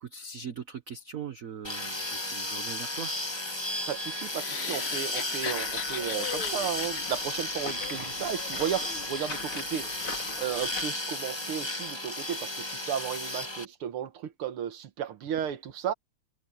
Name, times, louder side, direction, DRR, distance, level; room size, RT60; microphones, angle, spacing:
voice 1, 0.0-3.1, right 7 dB, 50° right, 1.1 m, -40 dB
sound 1, 1.6-13.6, left 1 dB, 15° left, 1.7 m, -34 dB
voice 2, 3.9-15.9, right 9 dB, 80° right, 2.1 m, -34 dB
sound 2, 4.2-8.4, left 7 dB, 55° left, 0.7 m, -39 dB
sound 3, 5.4-10.8, left 4 dB, 75° left, 5.0 m, -41 dB
omnidirectional pair, 2.4 m